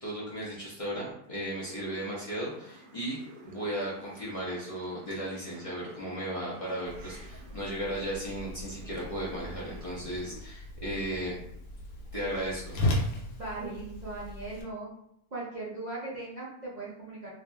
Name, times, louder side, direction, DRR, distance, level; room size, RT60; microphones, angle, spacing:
voice 1, 0.0-3.2 3.4-11.4 12.1-12.8, right 1 dB, 45° left, -6 dB, 0.4 m, -35 dB
sound 1, 1.7-10.4, right 1 dB, 90° right, 1.1 m, -51 dB
Whoosh swoosh swish, 6.9-14.6, left 1 dB, 75° left, 1.0 m, -36 dB
voice 2, 13.4-14.9 15.3-17.3, right 2 dB, 50° right, -7 dB, 0.5 m, -38 dB
2.7 x 2.5 x 2.2 m, 0.76 s
omnidirectional pair, 1.5 m